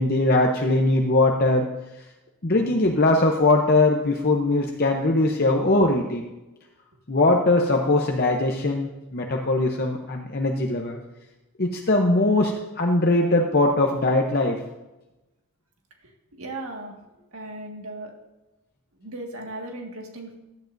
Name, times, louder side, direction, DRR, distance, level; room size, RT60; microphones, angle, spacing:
voice 1, 0.0-1.7 2.4-6.3 7.1-11.0 11.6-14.6, left 2 dB, 45° left, 1 dB, 0.8 m, -21 dB
voice 2, 16.4-16.9 17.3-18.1 19.0-20.4, right 2 dB, 70° right, 2 dB, 1.8 m, -36 dB
16.0 x 11.5 x 2.6 m, 1.0 s
head